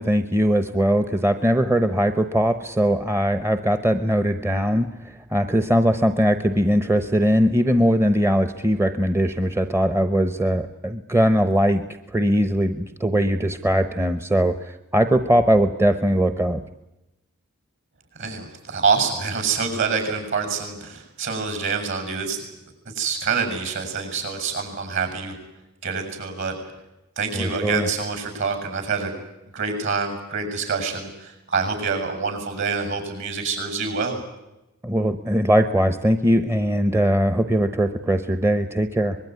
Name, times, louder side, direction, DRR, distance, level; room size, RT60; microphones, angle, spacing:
voice 1, 0.0-16.6 27.3-27.9 34.8-39.2, equal, 10° right, 10 dB, 0.9 m, -20 dB
voice 2, 18.2-22.4 22.9-25.3 25.8-26.5 27.2-29.1 29.5-34.2, right 5 dB, 60° right, 6 dB, 7.5 m, -26 dB
24.5 x 21.0 x 9.6 m, 0.95 s
head